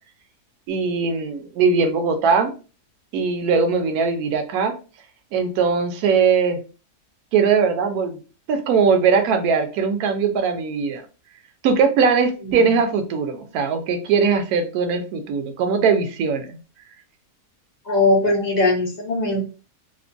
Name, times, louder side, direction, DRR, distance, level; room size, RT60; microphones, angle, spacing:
voice 1, 0.7-2.5 3.1-4.8 5.3-6.6 7.3-8.2 8.5-11.0 11.6-16.6, right 5 dB, 75° right, 6 dB, 1.0 m, -20 dB
voice 2, 17.9-19.5, left 2 dB, 55° left, -2 dB, 0.4 m, -20 dB
2.9 x 2.2 x 2.5 m, 0.34 s
omnidirectional pair, 1.7 m